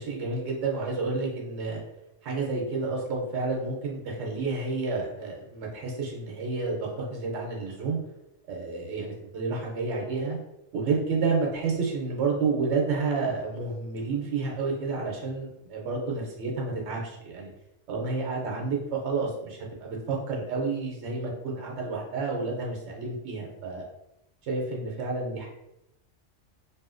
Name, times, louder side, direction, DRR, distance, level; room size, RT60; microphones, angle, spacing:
voice 1, 0.0-1.8 2.2-8.0 8.5-10.4 10.7-17.5 17.9-23.8 24.4-25.5, right 4 dB, 70° right, -1 dB, 1.0 m, -30 dB
2.7 x 2.6 x 2.5 m, 0.85 s
omnidirectional pair, 1.3 m